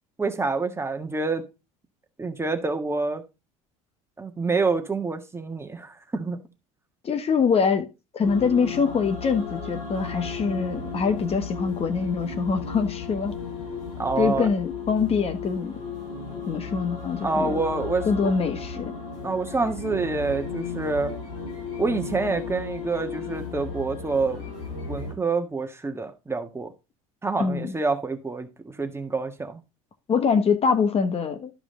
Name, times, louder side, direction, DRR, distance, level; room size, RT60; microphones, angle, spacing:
voice 1, 0.2-1.4 2.2-3.2 4.2-6.4 14.0-14.5 17.2-18.3 19.2-21.1 21.8-24.4 24.9-26.7 27.2-29.6, right 3 dB, 15° right, 1.6 m, -27 dB
voice 2, 7.0-7.9 8.1-13.3 14.2-15.7 16.5-17.5 18.0-18.9 27.4-27.7 30.1-31.5, left 5 dB, 35° left, 1.3 m, -24 dB
sound 1, 8.2-25.1, left 5 dB, 75° left, 6.4 m, -35 dB
13.0 x 4.9 x 3.8 m
hypercardioid pair, 75°, 17 cm